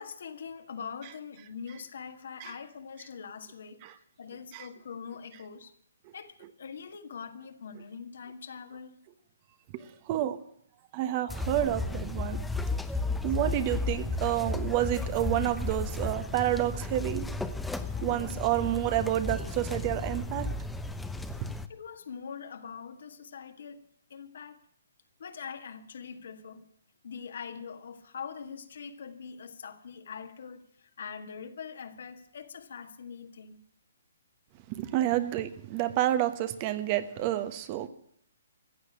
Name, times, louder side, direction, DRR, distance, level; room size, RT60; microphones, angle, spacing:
voice 1, 0.0-3.8 4.2-5.7 6.1-9.0 17.9-18.1 21.7-23.8 24.1-24.6 25.2-26.7 27.0-30.6 31.0-33.6, left 6 dB, 65° left, 8 dB, 1.8 m, -43 dB
voice 2, 10.1-10.4 10.9-12.4 13.2-17.3 18.0-20.5 34.7-37.9, right 13 dB, 35° right, 12 dB, 1.2 m, -29 dB
sound 1, 11.3-21.7, left 2 dB, 5° left, 0.7 m, -34 dB
15.0 x 8.3 x 10.0 m, 0.67 s
hypercardioid pair, 145°, 0 cm